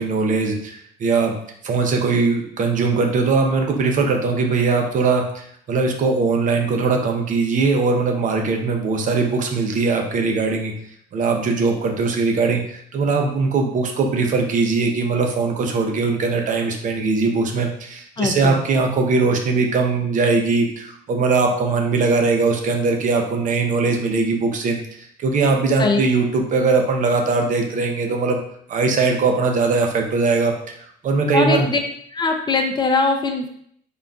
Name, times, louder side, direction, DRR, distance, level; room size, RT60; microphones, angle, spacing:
voice 1, 0.0-1.3 1.6-10.7 11.1-24.8 25.2-28.4 28.7-30.7 31.0-31.7, right 4 dB, 50° right, 3 dB, 0.6 m, -20 dB
voice 2, 18.2-18.6 25.8-26.0 31.3-31.8 32.1-33.5, left 3 dB, 25° left, 3 dB, 0.4 m, -21 dB
3.9 x 3.4 x 2.4 m, 0.67 s
cardioid pair, 110°, 17 cm